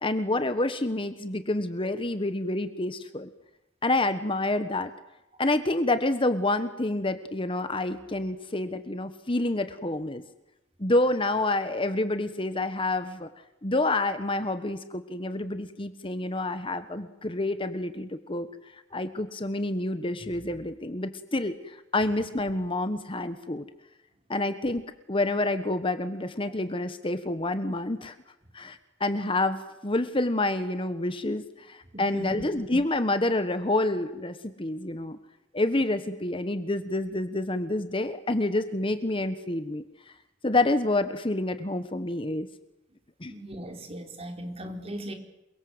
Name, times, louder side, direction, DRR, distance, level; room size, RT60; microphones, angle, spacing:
voice 1, 0.0-3.3 3.8-4.9 5.4-10.2 10.8-13.3 13.6-18.5 18.9-23.6 24.3-24.8 25.1-28.1 28.5-35.2 35.5-39.8 40.4-42.5 43.2-43.3, left 2 dB, 30° left, 10 dB, 1.3 m, -28 dB
voice 2, 31.9-32.4 43.3-45.1, right 1 dB, 35° right, 4 dB, 4.1 m, -38 dB
28.5 x 23.0 x 8.0 m, 0.92 s
head